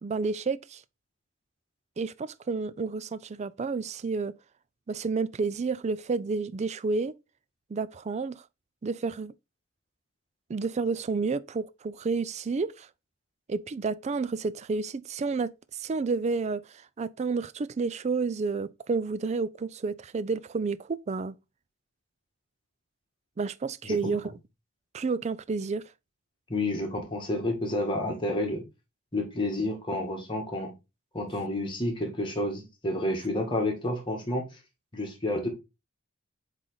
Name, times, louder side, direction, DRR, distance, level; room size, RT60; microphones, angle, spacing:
voice 1, 0.0-0.8 2.0-4.3 4.9-7.1 7.7-8.4 8.8-9.3 10.5-12.9 13.5-15.5 15.8-21.3 23.4-24.3 24.9-25.8, right 4 dB, 35° right, 0.3 m, -30 dB
voice 2, 26.5-28.6 29.1-30.7 31.1-34.5 34.9-35.5, left 1 dB, 25° left, 1.8 m, -30 dB
7.7 x 3.2 x 3.8 m
head